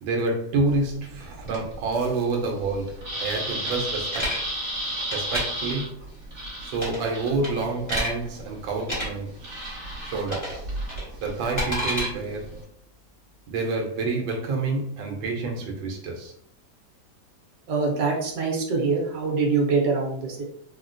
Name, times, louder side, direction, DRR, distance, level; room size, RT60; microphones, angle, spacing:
voice 1, 0.0-4.4 5.1-6.0 6.6-10.6 11.2-12.6 13.5-16.3, right 3 dB, 85° right, 1.4 m, -28 dB
sound 1, 0.7-12.6, right 1 dB, 35° right, 1.3 m, -35 dB
sound 2, 3.7-4.4 5.0-5.4 6.7-7.1 7.4-8.1 8.8-9.1 10.3-10.6 10.9-12.1, equal, 15° left, 0.8 m, -29 dB
voice 2, 17.7-20.5, right 4 dB, 70° right, 1.3 m, -24 dB
3.7 x 2.1 x 2.5 m
omnidirectional pair, 2.0 m